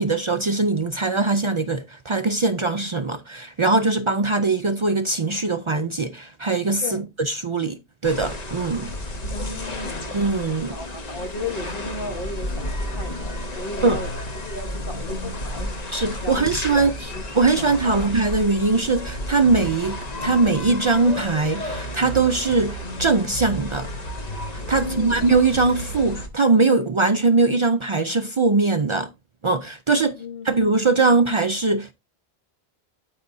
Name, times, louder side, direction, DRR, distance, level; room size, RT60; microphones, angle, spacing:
voice 1, 0.0-8.9 10.1-10.8 13.8-14.0 15.9-17.1 17.3-23.9 24.5-29.1 29.4-30.1 30.4-31.9, right 3 dB, 55° right, 0.3 m, -21 dB
sound 1, 8.0-26.3, equal, 40° left, 1.0 m, -32 dB
voice 2, 9.2-10.1 10.6-14.1 14.5-17.3 17.6-18.2 24.8-25.3 30.1-30.6, left 2 dB, 60° left, 1.6 m, -35 dB
12.0 x 4.8 x 2.7 m
omnidirectional pair, 1.1 m